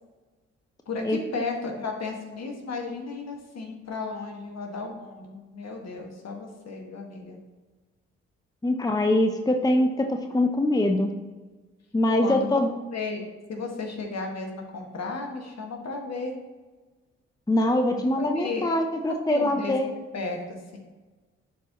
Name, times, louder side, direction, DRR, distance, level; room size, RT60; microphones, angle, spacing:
voice 1, 0.9-7.4 12.2-12.6 12.9-13.2 13.5-16.3 18.2-18.6 19.3-19.7 20.1-20.8, left 3 dB, 55° left, 2 dB, 1.7 m, -34 dB
voice 2, 8.6-11.1 11.9-12.7 17.5-19.9, left 1 dB, 10° left, 5 dB, 0.7 m, -23 dB
11.0 x 4.6 x 3.0 m, 1.3 s
hypercardioid pair, 40°, 32 cm